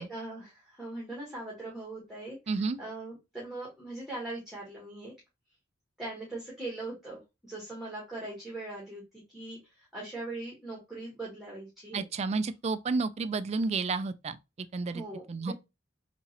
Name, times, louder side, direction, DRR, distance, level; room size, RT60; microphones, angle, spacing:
voice 1, 0.0-5.1 6.0-9.0 9.3-9.6 9.9-12.0 14.9-15.5, right 2 dB, ahead, 1.4 m, -40 dB
voice 2, 2.5-2.8 11.9-14.4 14.7-15.0 15.3-15.5, right 4 dB, 35° right, 0.3 m, -31 dB
3.6 x 3.0 x 2.8 m
head